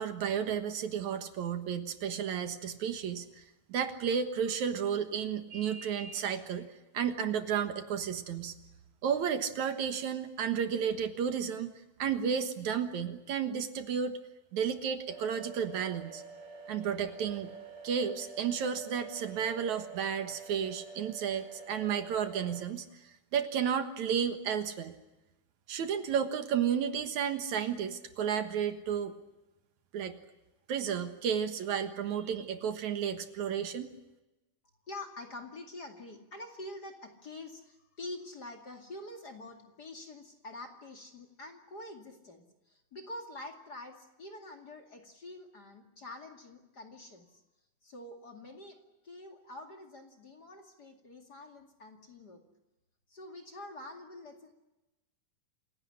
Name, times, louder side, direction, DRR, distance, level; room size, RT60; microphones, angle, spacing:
voice 1, 0.0-3.4 3.7-6.7 6.9-8.5 9.0-11.7 12.0-14.2 14.5-16.2 16.7-17.5 17.8-24.9 25.7-29.1 29.9-30.2 30.7-33.9, right 7 dB, 70° right, 9 dB, 2.7 m, -32 dB
sound 1, 15.1-22.7, right 5 dB, 35° right, 2.7 m, -48 dB
voice 2, 34.9-47.4 47.8-48.8 49.0-52.4 53.1-54.5, left 2 dB, 35° left, 4 dB, 2.5 m, -46 dB
28.0 x 17.0 x 10.0 m, 1.0 s
omnidirectional pair, 3.7 m